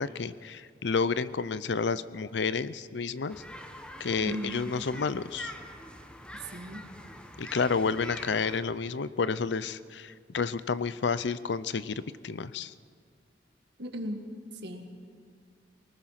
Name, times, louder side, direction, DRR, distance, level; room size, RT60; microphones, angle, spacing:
voice 1, 0.0-3.4 4.0-5.5 7.4-12.7, left 5 dB, 85° left, 16 dB, 0.6 m, -30 dB
sound 1, 3.3-8.6, equal, 5° left, 1.2 m, -45 dB
voice 2, 4.2-4.6 6.5-6.8 13.8-14.2 14.6-15.0, equal, 70° right, 4 dB, 2.0 m, -36 dB
23.5 x 19.0 x 5.9 m, 2.1 s
head